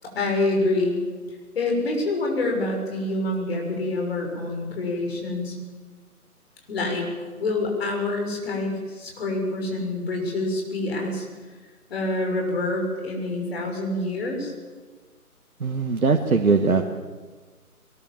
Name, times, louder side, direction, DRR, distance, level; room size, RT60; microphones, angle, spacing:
voice 1, 0.0-1.0 1.5-5.6 6.7-7.1 7.4-11.3 11.9-14.5, left 2 dB, 40° left, 1 dB, 6.3 m, -26 dB
voice 2, 15.6-16.8, right 4 dB, 70° right, 5 dB, 1.7 m, -20 dB
22.0 x 19.5 x 7.4 m, 1.4 s
figure-of-eight pair, 145°, 45 cm